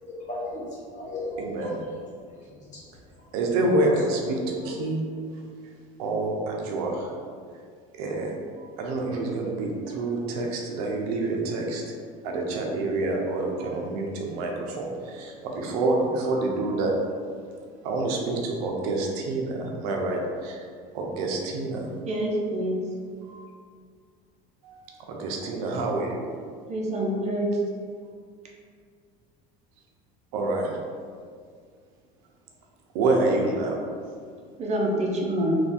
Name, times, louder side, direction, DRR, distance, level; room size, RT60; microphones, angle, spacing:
voice 1, 0.3-2.0 2.3-2.8 3.6-3.9 4.4-4.5, left 1 dB, 40° left, -5 dB, 1.4 m, -36 dB
voice 2, 1.4-1.7 3.3-5.1 6.0-7.1 8.0-11.8 12.2-17.0 17.8-20.6 20.9-21.9 23.3-23.5 24.6-24.8 25.1-26.3 30.3-30.8 32.9-33.8, right 2 dB, 85° right, 0 dB, 0.7 m, -27 dB
voice 3, 22.0-22.8 26.7-27.5 34.6-35.6, right 1 dB, 35° right, -1 dB, 0.8 m, -26 dB
3.4 x 2.6 x 4.1 m, 2.1 s
supercardioid pair, 105°, 19 cm